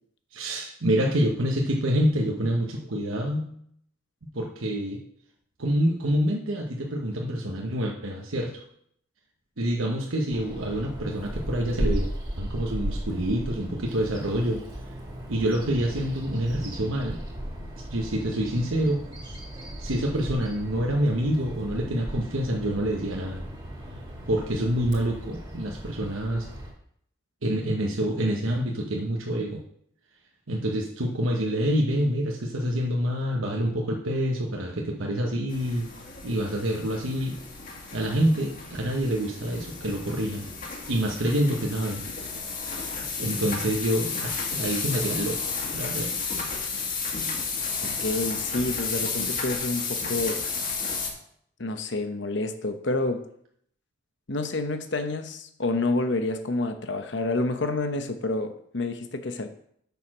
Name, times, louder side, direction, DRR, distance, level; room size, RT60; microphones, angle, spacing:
voice 1, 0.3-3.5 4.3-5.0 5.6-8.6 9.6-12.1 12.4-14.6 15.3-17.2 17.9-19.0 19.8-23.4 24.3-26.5 27.4-29.6 30.5-35.9 36.2-37.4 37.9-40.5 40.9-42.0 42.7-46.2, equal, 85° right, 0 dB, 1.1 m, -27 dB
Bird vocalization bird call bird song, 10.3-26.7, equal, 20° right, 2.0 m, -36 dB
sound 1, 35.5-51.1, left 4 dB, 40° left, 1.5 m, -32 dB
voice 2, 48.0-50.4 51.6-53.2 54.3-59.5, left 2 dB, 60° left, 8 dB, 0.9 m, -28 dB
7.0 x 6.3 x 6.1 m, 0.68 s
head